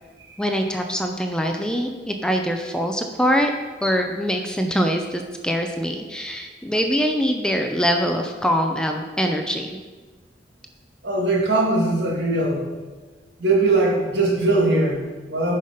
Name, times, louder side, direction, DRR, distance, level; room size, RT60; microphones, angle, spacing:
voice 1, 0.4-3.5 3.8-9.8, equal, 5° left, 3 dB, 0.5 m, -23 dB
voice 2, 11.0-12.6 13.4-15.6, right 2 dB, 80° right, -1 dB, 1.9 m, -20 dB
9.4 x 5.6 x 5.1 m, 1.3 s
head